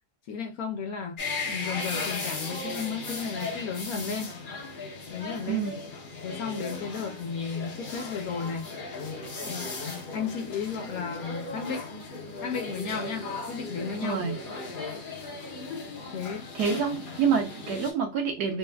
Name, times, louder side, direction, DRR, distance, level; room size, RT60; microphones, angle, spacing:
voice 1, 0.3-1.2 1.5-4.3 5.1-5.6 6.2-8.7 9.4-9.7 10.1-11.9 12.4-14.3 16.1-16.8, left 6 dB, 70° left, 1.0 m, -34 dB
sound 1, 1.2-17.9, left 3 dB, 45° left, 0.6 m, -37 dB
voice 2, 5.5-5.8 14.0-14.4 16.5-18.6, right 6 dB, 75° right, 1.3 m, -27 dB
3.4 x 2.3 x 2.2 m
omnidirectional pair, 1.8 m